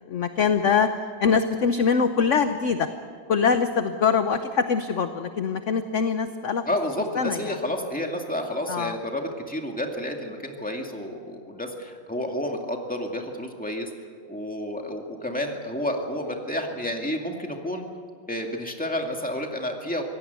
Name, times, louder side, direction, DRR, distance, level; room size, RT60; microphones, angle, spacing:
voice 1, 0.1-0.9 1.2-2.9 3.3-6.6 7.2-7.5 8.7-8.9, left 6 dB, 55° left, 9 dB, 0.9 m, -23 dB
voice 2, 6.7-13.9 14.3-17.8 18.3-20.0, left 1 dB, 5° left, 2 dB, 2.1 m, -30 dB
25.0 x 17.5 x 8.2 m, 2.1 s
omnidirectional pair, 2.1 m